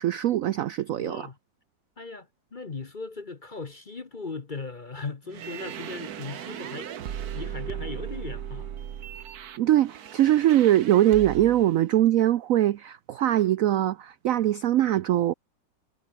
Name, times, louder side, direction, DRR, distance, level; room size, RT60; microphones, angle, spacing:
voice 1, 0.0-1.3 9.6-15.3, right 12 dB, 75° right, 0.7 m, -22 dB
voice 2, 0.9-1.4 2.0-6.9 7.3-8.7, left 4 dB, 30° left, 1.0 m, -38 dB
sound 1, 5.3-11.7, right 9 dB, 60° right, 1.4 m, -37 dB
omnidirectional pair, 2.0 m